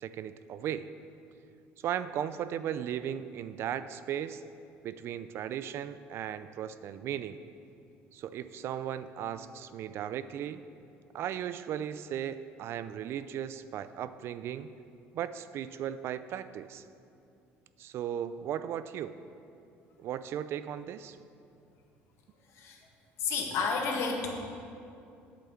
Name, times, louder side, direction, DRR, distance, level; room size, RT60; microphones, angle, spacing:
voice 1, 0.0-0.9 1.8-4.4 4.8-7.4 8.1-10.6 11.1-14.7 15.1-16.8 17.8-19.2 20.0-21.2, right 10 dB, 60° right, 13 dB, 0.5 m, -36 dB
voice 2, 23.2-24.3, left 4 dB, 65° left, 0 dB, 1.9 m, -31 dB
8.4 x 7.6 x 7.2 m, 2.6 s
cardioid pair, 100°, 5 cm